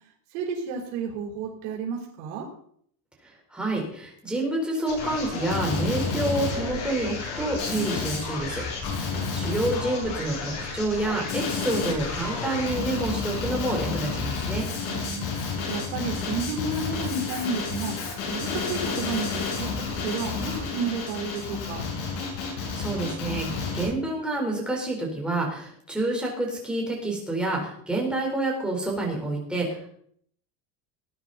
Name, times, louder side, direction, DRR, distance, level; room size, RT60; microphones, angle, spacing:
voice 1, 0.3-2.4 9.1-9.4 14.8-15.3 15.7-18.0 18.3-19.3 19.6-21.8, right 4 dB, 85° right, -2 dB, 4.6 m, -31 dB
voice 2, 3.5-8.6 8.9-14.7 22.5-29.9, right 2 dB, ahead, -2 dB, 3.9 m, -28 dB
Male speech man speaking, 4.9-23.9, left 5 dB, 80° left, 7.7 m, -30 dB
19.0 x 9.9 x 4.1 m, 0.64 s
cardioid pair, 165°, 44 cm